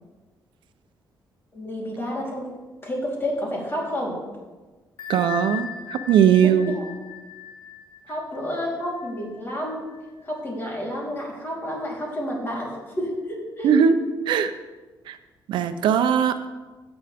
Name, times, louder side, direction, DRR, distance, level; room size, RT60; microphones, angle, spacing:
voice 1, 1.5-2.5 2.8-4.2 6.4-6.8 8.1-9.9 10.2-13.7, equal, 30° left, -3 dB, 3.8 m, -30 dB
Bell, 5.0-10.4, left 9 dB, 70° left, 1.5 m, -38 dB
voice 2, 5.1-6.8 13.6-14.0 14.3-14.5 15.1-15.2 15.5-16.5, right 8 dB, 90° right, 9 dB, 0.7 m, -19 dB
16.5 x 8.9 x 3.6 m, 1.2 s
cardioid pair, 125°, 8 cm